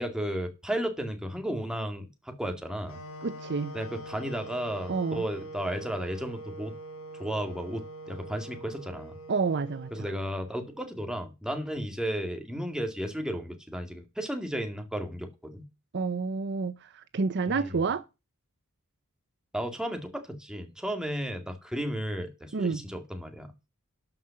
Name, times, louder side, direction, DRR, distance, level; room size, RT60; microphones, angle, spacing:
voice 1, 0.0-3.0 3.7-6.7 7.1-9.1 9.9-15.7 17.5-17.7 19.5-23.5, equal, 5° right, 2.2 m, -34 dB
sound 1, 2.9-10.9, right 1 dB, 85° left, 3.7 m, -44 dB
voice 2, 3.2-3.7 4.9-5.2 9.3-10.1 15.9-18.0 22.5-22.8, right 4 dB, 50° right, 0.6 m, -29 dB
12.5 x 5.6 x 7.1 m
head